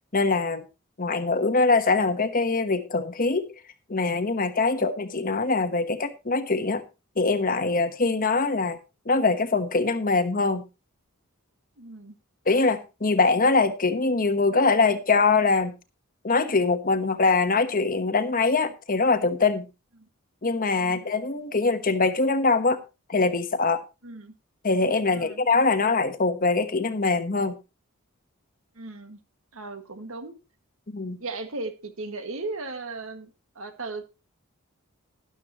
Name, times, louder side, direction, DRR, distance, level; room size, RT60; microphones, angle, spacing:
voice 1, 0.1-0.6 1.0-3.5 3.9-6.8 7.2-8.8 9.1-10.6 12.5-15.7 16.2-19.7 20.4-22.8 23.1-23.8 24.6-27.5 30.9-31.2, left 3 dB, 40° left, 1.1 m, -23 dB
voice 2, 11.8-12.2 20.0-20.1 20.8-21.0 24.0-24.3 25.1-25.4 28.8-29.2 29.5-30.3 31.2-34.0, right 3 dB, 65° right, 1.9 m, -37 dB
12.5 x 11.5 x 3.0 m
head